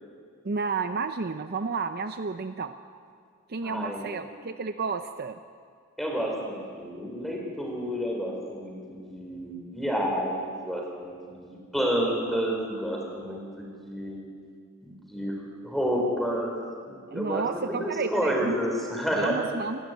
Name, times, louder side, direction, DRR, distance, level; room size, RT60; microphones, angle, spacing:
voice 1, 0.4-2.7 3.5-5.4 17.1-18.6 19.2-19.8, right 4 dB, 45° right, 9 dB, 0.6 m, -31 dB
voice 2, 3.6-4.2 6.0-14.2 14.8-16.6 16.9-19.4, equal, ahead, -1 dB, 4.1 m, -30 dB
26.0 x 11.5 x 9.3 m, 2.1 s
head